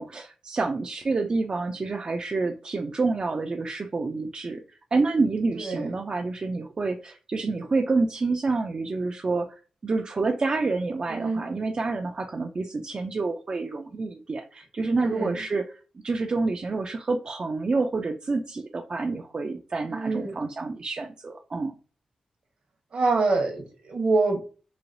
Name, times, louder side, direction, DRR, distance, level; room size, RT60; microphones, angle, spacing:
voice 1, 0.0-21.7, right 3 dB, 40° right, 0.4 m, -28 dB
voice 2, 11.1-11.5 15.0-15.3 19.9-20.4 22.9-24.4, right 3 dB, 65° right, 1.2 m, -25 dB
3.1 x 2.7 x 2.6 m
cardioid pair, 70°, 2 cm